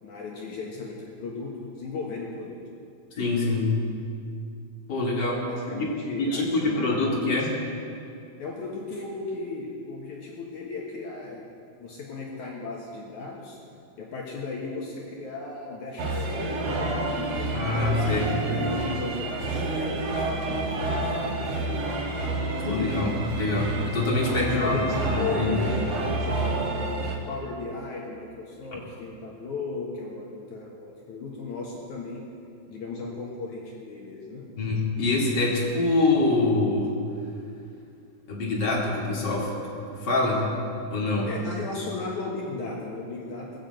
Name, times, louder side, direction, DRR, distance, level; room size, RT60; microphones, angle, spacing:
voice 1, 0.0-2.6 5.5-7.5 8.4-11.5 11.8-13.6 14.0-17.9 18.4-21.2 24.4-26.6 27.3-32.2 32.7-34.5 41.2-43.6, left 3 dB, 90° left, -2 dB, 1.7 m, -36 dB
voice 2, 3.1-3.7 4.9-5.4 5.8-5.9 6.2-7.5 17.5-18.4 22.6-25.5 34.6-36.9 38.3-40.5 40.9-41.3, left 2 dB, 30° left, -4 dB, 2.0 m, -25 dB
sound 1, 16.0-27.2, right 2 dB, 55° right, 2.4 m, -29 dB
20.5 x 7.4 x 8.0 m, 2.5 s
omnidirectional pair, 5.9 m